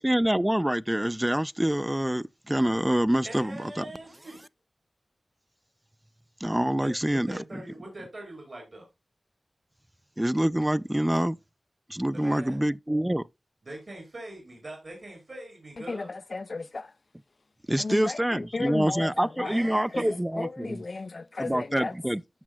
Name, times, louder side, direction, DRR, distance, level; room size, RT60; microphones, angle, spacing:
voice 1, 0.0-3.9 6.4-7.4 10.2-11.4 11.9-13.2 17.7-20.8 21.4-22.2, right 1 dB, 15° right, 0.4 m, -26 dB
voice 2, 3.2-4.5 6.8-8.9 12.1-12.6 13.6-16.1 19.4-20.2, right 1 dB, 60° right, 4.3 m, -42 dB
voice 3, 15.9-16.9 17.8-19.5 19.9-21.9, left 3 dB, 60° left, 0.4 m, -34 dB
13.5 x 6.0 x 2.2 m
cardioid pair, 45°, 0 cm